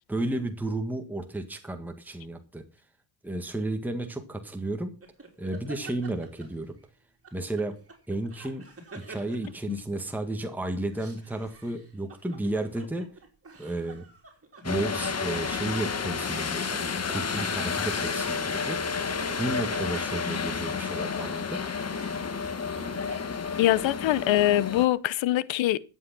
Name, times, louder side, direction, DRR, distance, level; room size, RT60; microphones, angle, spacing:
voice 1, 0.1-2.6 3.2-5.0 5.4-6.7 7.3-7.8 8.1-8.7 8.9-13.1 13.6-14.0 14.6-18.8 19.4-21.6, right 2 dB, 5° right, 1.7 m, -32 dB
sound 1, 5.0-6.9 7.2-10.3 10.7-23.4, right 3 dB, 30° right, 4.1 m, -48 dB
sound 2, 14.6-24.9, left 5 dB, 35° left, 1.4 m, -31 dB
Telephone, 18.0-20.0, right 1 dB, 45° right, 1.9 m, -39 dB
voice 2, 23.6-25.8, left 14 dB, 75° left, 0.9 m, -23 dB
13.5 x 8.3 x 6.0 m
cardioid pair, 95°, 46 cm